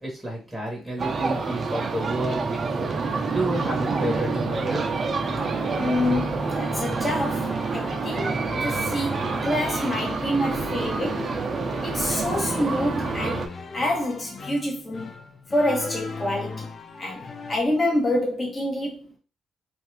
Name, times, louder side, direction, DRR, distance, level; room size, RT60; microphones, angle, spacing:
voice 1, 0.0-2.9 3.3-4.8, right 1 dB, ahead, 1.3 m, -30 dB
sound 1, 1.0-13.5, right 4 dB, 40° right, 0.5 m, -27 dB
sound 2, 3.3-17.6, left 4 dB, 40° left, 0.5 m, -38 dB
voice 2, 5.8-11.3 11.8-13.4 13.7-15.1 15.5-16.7 17.0-19.1, left 1 dB, 25° left, 1.2 m, -27 dB
2.7 x 2.4 x 3.2 m
cardioid pair, 90°, 0 cm